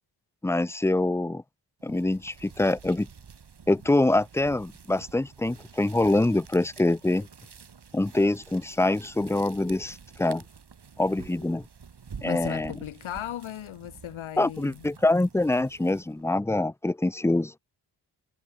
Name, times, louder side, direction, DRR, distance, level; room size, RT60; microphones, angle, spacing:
voice 1, 0.4-1.4 1.8-3.1 3.7-7.3 7.9-10.4 11.0-11.6 12.2-12.7 14.4-17.5, left 2 dB, 5° left, 0.5 m, -25 dB
sound 1, 1.8-16.3, right 6 dB, 55° right, 6.0 m, -49 dB
voice 2, 12.2-14.9, left 12 dB, 80° left, 2.4 m, -37 dB
supercardioid pair, 45°, 47 cm